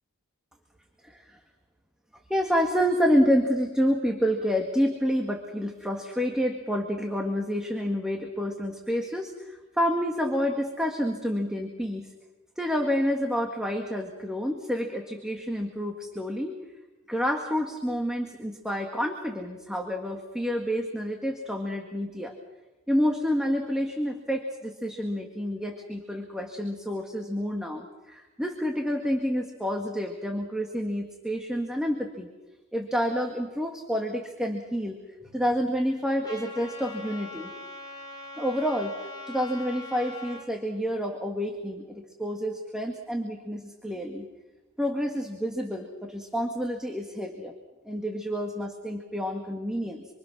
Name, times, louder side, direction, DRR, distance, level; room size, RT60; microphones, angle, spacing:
voice 1, 2.3-12.1 12.6-16.6 17.1-22.3 22.9-32.3 32.7-35.0 35.2-37.5 38.4-39.0 39.3-44.3 44.8-47.5 47.9-50.1, equal, 5° right, 2 dB, 1.8 m, -28 dB
Trumpet, 36.2-40.4, left 2 dB, 20° left, 4.6 m, -42 dB
26.5 x 25.0 x 6.2 m, 1.1 s
head